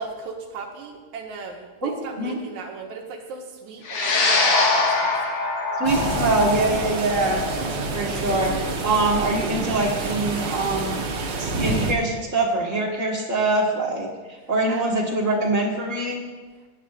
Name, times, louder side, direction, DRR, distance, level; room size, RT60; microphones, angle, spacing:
voice 1, 0.0-5.4 7.3-7.5 14.7-14.8, right 4 dB, 75° right, 1 dB, 2.5 m, -37 dB
voice 2, 1.8-2.4 5.8-7.4 7.9-11.0 11.4-16.2, right 2 dB, 35° right, -2 dB, 1.3 m, -24 dB
sound 1, 3.8-12.4, left 3 dB, 70° left, 2.9 m, -25 dB
sound 2, 5.8-11.9, right 3 dB, 60° right, 1.2 m, -28 dB
17.0 x 10.0 x 2.5 m, 1.3 s
omnidirectional pair, 3.5 m